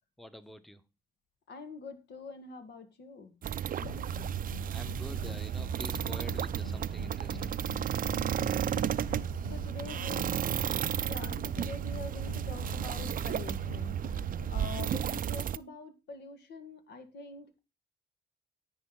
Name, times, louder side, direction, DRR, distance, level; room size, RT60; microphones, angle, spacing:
voice 1, 0.2-0.8 4.7-7.5, equal, ahead, 12 dB, 1.0 m, -47 dB
voice 2, 1.5-3.4 9.5-10.3 10.9-17.6, left 4 dB, 65° left, 8 dB, 1.8 m, -45 dB
sound 1, 3.4-15.6, right 10 dB, 50° right, 0.5 m, -33 dB
sound 2, 3.8-15.3, left 13 dB, 85° left, 0.4 m, -47 dB
9.9 x 8.6 x 3.8 m, 0.28 s
hypercardioid pair, 45°, 18 cm